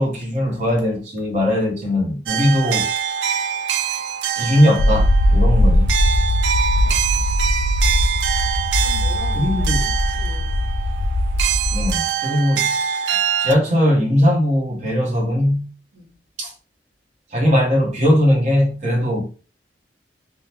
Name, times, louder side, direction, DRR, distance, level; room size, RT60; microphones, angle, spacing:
voice 1, 0.0-2.9 4.4-5.9 9.3-9.9 11.7-12.7 13.4-15.7 16.4-16.5 17.3-19.2, left 1 dB, 40° right, 0.9 m, -19 dB
sound 1, 2.3-13.5, right 8 dB, 90° right, 0.3 m, -24 dB
sound 2, 4.8-12.0, left 1 dB, 50° left, 0.3 m, -19 dB
voice 2, 6.8-7.4 8.7-9.7 10.1-10.7 15.9-16.2, equal, 70° right, 0.9 m, -42 dB
3.7 x 2.0 x 2.8 m
head